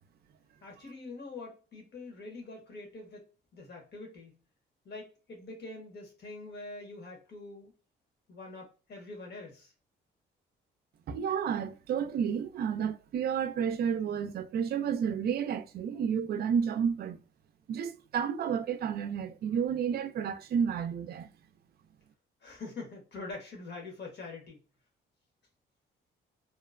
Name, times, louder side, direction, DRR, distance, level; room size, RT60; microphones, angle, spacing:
voice 1, 0.6-3.2 3.5-4.3 4.8-7.7 8.3-9.7 22.4-24.6, left 3 dB, 55° left, 1.3 m, -44 dB
voice 2, 11.1-17.2 17.7-21.3, right 7 dB, 50° right, 0.4 m, -31 dB
2.9 x 2.0 x 2.4 m
cardioid pair, 90°, 20 cm